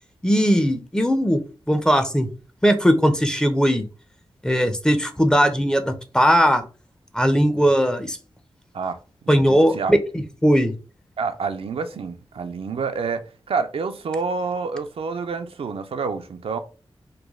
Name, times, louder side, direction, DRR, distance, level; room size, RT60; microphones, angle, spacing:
voice 1, 0.2-1.4 1.7-2.3 2.6-3.8 4.4-6.6 7.1-8.2 9.3-10.7, equal, 5° left, 0.5 m, -19 dB
voice 2, 8.7-9.9 11.2-16.6, right 4 dB, 70° right, 0.4 m, -28 dB
3.2 x 2.2 x 3.5 m
cardioid pair, 60°, 10 cm